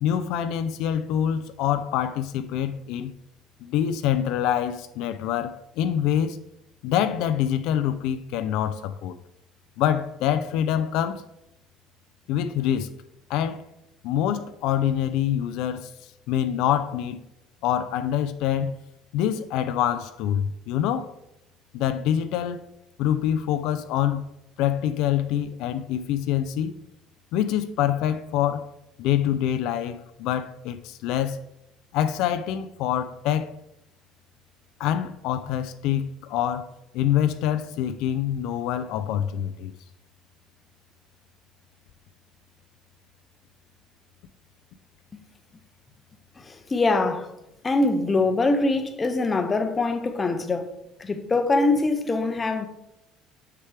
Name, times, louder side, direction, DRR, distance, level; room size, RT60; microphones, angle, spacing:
voice 1, 0.0-3.1 3.6-6.4 6.8-9.1 9.8-11.2 12.3-12.9 13.3-13.7 14.0-15.9 16.3-17.2 17.6-18.8 19.1-21.1 21.7-22.7 23.0-24.3 24.6-26.7 27.3-28.7 29.0-31.4 31.9-33.6 34.8-39.7, left 10 dB, 75° left, 0.4 m, -25 dB
voice 2, 46.4-47.3 47.6-50.7 51.0-52.7, left 3 dB, 20° left, 0.6 m, -23 dB
6.6 x 5.8 x 3.3 m
cardioid pair, 145°, 0 cm